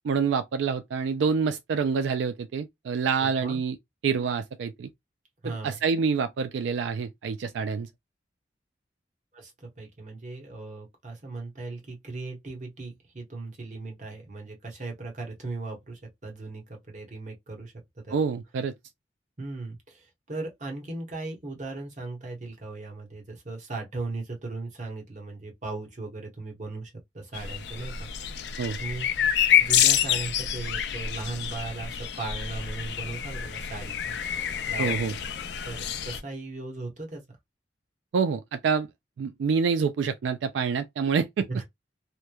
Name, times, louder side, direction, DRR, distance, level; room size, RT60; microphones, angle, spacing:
voice 1, 0.0-3.8 4.0-4.9 5.4-7.9 18.1-18.7 28.6-28.8 34.8-35.1 38.1-38.9 39.2-41.5, right 5 dB, 80° right, 0.3 m, -27 dB
voice 2, 3.2-3.6 5.4-5.8 9.3-18.2 19.4-28.1 28.8-29.3 29.6-34.2 34.7-35.2 35.6-37.2 41.5-41.6, right 3 dB, 40° right, 1.0 m, -37 dB
sound 1, 27.3-36.2, left 9 dB, 65° left, 0.4 m, -27 dB
3.0 x 2.1 x 2.2 m
head